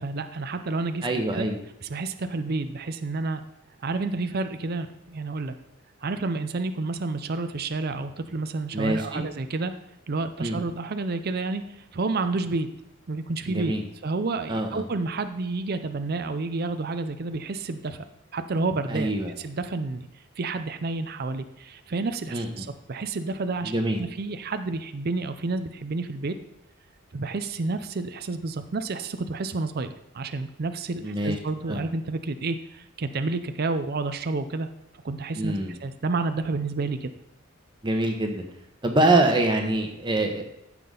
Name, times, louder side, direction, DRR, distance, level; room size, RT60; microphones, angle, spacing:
voice 1, 0.0-1.1 1.3-1.5 1.8-3.4 3.8-5.5 6.0-9.7 10.1-12.7 13.1-13.7 14.0-18.0 18.3-19.1 19.4-20.1 20.4-26.3 27.1-34.7 35.0-37.1, right 3 dB, 50° right, 9 dB, 0.5 m, -30 dB
voice 2, 1.0-1.6 8.7-9.2 10.4-10.6 13.5-13.8 14.5-14.8 18.9-19.3 22.3-22.5 23.6-24.0 31.0-31.4 31.7-31.8 35.4-35.7 37.8-38.4 38.8-40.4, right 2 dB, 20° right, 3 dB, 1.2 m, -24 dB
15.0 x 6.0 x 3.9 m, 0.86 s
head